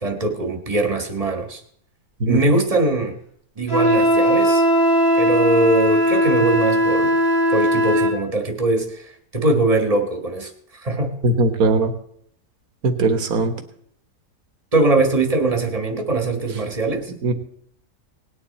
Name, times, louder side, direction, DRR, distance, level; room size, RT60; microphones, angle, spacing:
voice 1, 0.0-1.6 2.2-3.2 3.6-4.6 5.1-7.1 7.5-9.0 9.3-10.5 10.8-11.2 14.7-17.1, right 2 dB, 25° right, 5 dB, 1.6 m, -21 dB
Wind instrument woodwind instrument, 3.7-8.2, equal, 65° left, 5.9 m, -18 dB
voice 2, 11.2-11.9 12.8-13.5 17.2-17.3, right 2 dB, 65° right, 6 dB, 1.9 m, -19 dB
19.0 x 9.8 x 4.3 m, 0.66 s
omnidirectional pair, 1.7 m